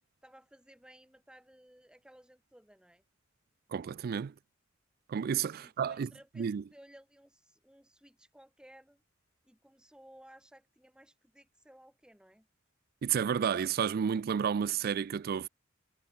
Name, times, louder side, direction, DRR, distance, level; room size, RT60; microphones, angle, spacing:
voice 1, 0.2-3.0 5.6-9.0 9.4-12.5, equal, 5° right, 5.2 m, -58 dB
voice 2, 3.7-4.3 5.1-6.1 6.4-6.6 13.0-15.5, right 7 dB, 50° right, 0.3 m, -31 dB
head